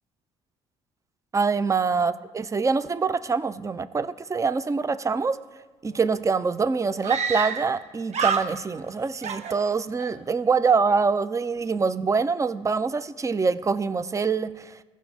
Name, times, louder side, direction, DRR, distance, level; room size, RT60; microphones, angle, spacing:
voice 1, 1.3-5.4 5.8-14.7, right 5 dB, 20° right, 14 dB, 0.5 m, -25 dB
Screaming, 5.9-6.0 6.2-6.3 7.0-7.8 8.1-8.9 9.2-10.1, right 6 dB, 50° right, 0.9 m, -28 dB
16.0 x 6.0 x 2.8 m, 1.3 s
hypercardioid pair, 55°, 15 cm